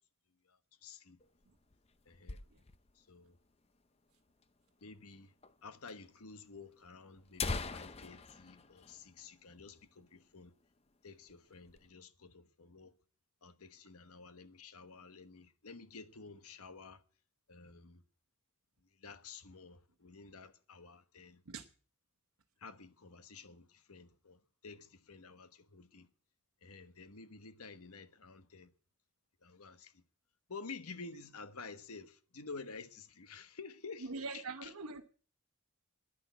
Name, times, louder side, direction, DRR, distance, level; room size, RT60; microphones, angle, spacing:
voice 1, 0.8-1.2 2.1-2.4 3.1-3.3 4.8-5.3 5.6-10.5 11.0-12.9 13.4-17.0 17.5-18.0 19.0-21.4 22.6-26.1 26.6-28.7 29.4-29.9 30.5-34.1 34.3-34.7, left 4 dB, 85° left, 1.1 m, -51 dB
sound 1, 1.2-3.0 3.3-3.4 3.6-3.7 4.4-4.5 5.4-5.6 5.9-6.0 6.7-6.8 7.2-9.8 10.1-10.2 10.6-10.9 11.3-11.9, left 4 dB, 25° left, 0.6 m, -42 dB
voice 2, 34.0-35.0, right 3 dB, 90° right, 1.0 m, -42 dB
10.5 x 10.5 x 9.4 m
head